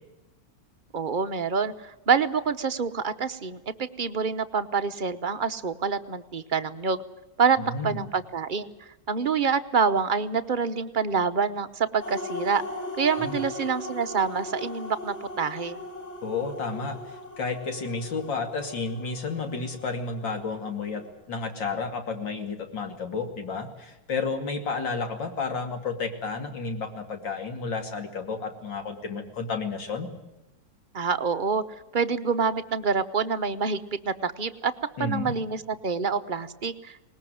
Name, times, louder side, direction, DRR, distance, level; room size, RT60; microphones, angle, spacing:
voice 1, 0.9-7.0 7.4-8.7 9.1-12.6 13.0-15.8 30.9-31.6 31.9-33.8 34.0-34.7 35.0-37.0, right 5 dB, 40° right, 9 dB, 0.7 m, -26 dB
voice 2, 7.6-8.0 13.2-13.4 16.2-30.1 35.0-35.4, left 4 dB, 75° left, 5 dB, 3.2 m, -31 dB
sound 1, 12.0-21.1, left 1 dB, 35° left, 7.2 m, -39 dB
20.5 x 20.0 x 9.2 m, 0.96 s
omnidirectional pair, 2.0 m